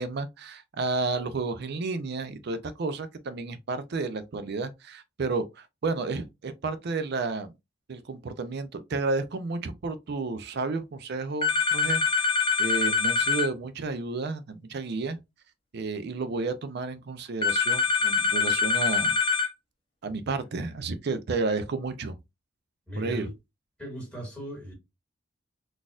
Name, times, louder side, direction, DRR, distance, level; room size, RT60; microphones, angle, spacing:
voice 1, 0.0-7.5 7.9-12.3 12.6-15.2 15.7-19.2 20.0-22.2 23.0-23.3, right 3 dB, 55° right, 0.4 m, -31 dB
sound 1, 11.4-13.5 17.4-19.5, left 5 dB, 25° left, 0.5 m, -24 dB
voice 2, 22.9-23.3 23.8-24.7, equal, 5° left, 1.8 m, -37 dB
4.0 x 2.5 x 2.4 m
head